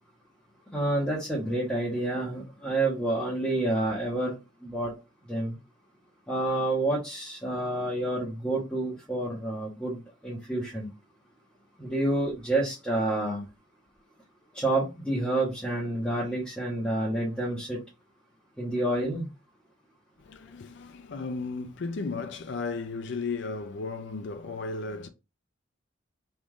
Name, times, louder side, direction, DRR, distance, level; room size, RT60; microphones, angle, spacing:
voice 1, 0.7-4.4 4.6-4.9 5.3-5.6 6.3-10.9 11.8-13.4 14.5-17.8 18.6-19.3, right 1 dB, 5° left, 0.9 m, -29 dB
voice 2, 20.2-25.1, left 4 dB, 60° left, 0.4 m, -35 dB
3.1 x 2.5 x 3.6 m
head